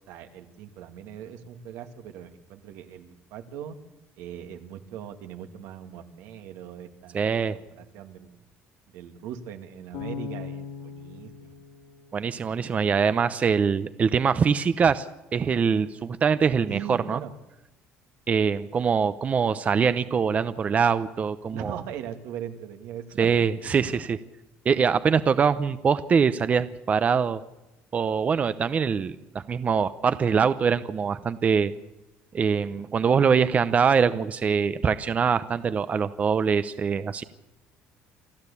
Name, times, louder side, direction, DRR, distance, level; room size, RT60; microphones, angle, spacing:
voice 1, 0.1-3.8 4.2-7.3 7.5-8.4 8.9-11.5 16.6-17.3 18.8-18.9 21.5-23.3 23.6-23.7, right 9 dB, 85° right, 6 dB, 2.1 m, -40 dB
voice 2, 7.1-7.6 12.1-15.1 15.3-17.2 18.3-21.8 23.2-24.2 24.6-27.4 27.9-31.7 32.3-37.2, right 6 dB, 30° right, 13 dB, 0.8 m, -23 dB
Bass guitar, 9.9-13.0, left 6 dB, 90° left, 6.4 m, -40 dB
28.0 x 13.0 x 8.5 m, 0.97 s
cardioid pair, 125°, 5 cm